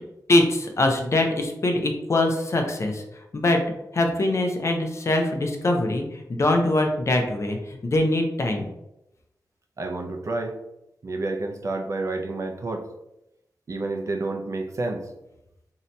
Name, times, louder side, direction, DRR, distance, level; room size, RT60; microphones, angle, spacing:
voice 1, 0.3-3.0 3.3-3.6 3.9-8.7, left 2 dB, 40° left, 3 dB, 0.4 m, -23 dB
voice 2, 9.8-10.5 11.0-12.8 13.7-15.0, right 2 dB, 45° right, 3 dB, 0.4 m, -29 dB
2.7 x 2.2 x 3.9 m, 0.86 s
wide cardioid pair, 145°, 7 cm